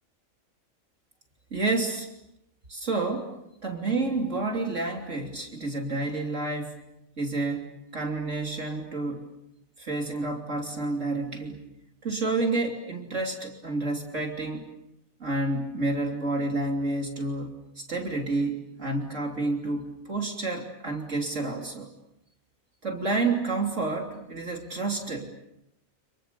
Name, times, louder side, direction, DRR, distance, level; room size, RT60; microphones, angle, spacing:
voice 1, 1.5-2.1 2.7-3.4 3.6-6.8 7.2-9.2 9.8-11.6 12.0-14.6 15.2-21.9 22.8-25.3, right 3 dB, 60° right, 2 dB, 3.5 m, -29 dB
30.0 x 28.0 x 6.9 m, 0.83 s
omnidirectional pair, 1.4 m